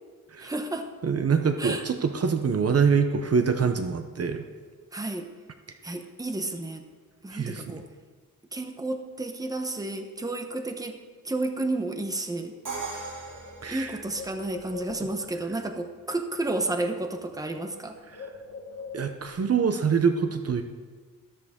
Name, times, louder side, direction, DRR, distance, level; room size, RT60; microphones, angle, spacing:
voice 1, 0.4-0.9 1.6-1.8 4.9-5.3 5.8-6.8 7.2-7.9 8.5-11.0 11.2-12.6 13.7-18.0, right 2 dB, 10° right, 6 dB, 0.8 m, -31 dB
voice 2, 1.0-4.4 7.3-7.8 13.6-14.0 18.1-18.3 18.9-20.6, right 6 dB, 45° right, 7 dB, 0.7 m, -25 dB
Bird, 12.5-12.6 12.9-15.4 16.5-16.7 17.0-19.4, left 4 dB, 45° left, 1.5 m, -43 dB
Crash cymbal, 12.6-14.6, right 3 dB, 60° right, 2.6 m, -38 dB
13.5 x 13.0 x 3.6 m, 1.5 s
wide cardioid pair, 160°, 34 cm